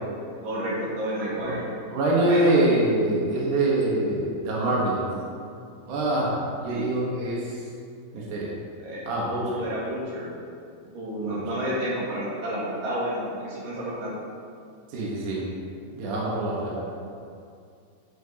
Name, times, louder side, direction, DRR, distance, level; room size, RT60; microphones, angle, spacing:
voice 1, 0.4-1.6 2.2-2.5 4.4-4.8 6.7-6.9 8.8-9.0 9.3-10.3 10.9-14.1, equal, 55° right, -7 dB, 3.0 m, -30 dB
voice 2, 1.9-5.0 5.9-7.6 8.1-8.5 9.1-9.6 11.3-11.4 14.9-15.5 15.9-16.9, right 2 dB, 75° right, -5 dB, 1.8 m, -25 dB
10.0 x 8.3 x 2.9 m, 2.3 s
omnidirectional pair, 5.5 m